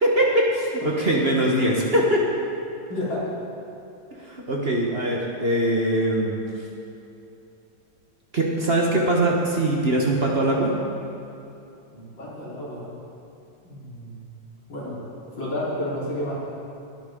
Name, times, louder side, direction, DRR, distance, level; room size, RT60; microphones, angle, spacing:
voice 1, 0.0-2.3 4.2-6.4 8.3-10.7, right 1 dB, 35° right, -2 dB, 1.3 m, -22 dB
voice 2, 2.9-3.3 11.9-12.9 13.6-14.2 14.7-15.0 15.4-16.4, left 1 dB, 85° left, -9 dB, 4.6 m, -31 dB
20.0 x 9.7 x 3.7 m, 2.8 s
omnidirectional pair, 2.0 m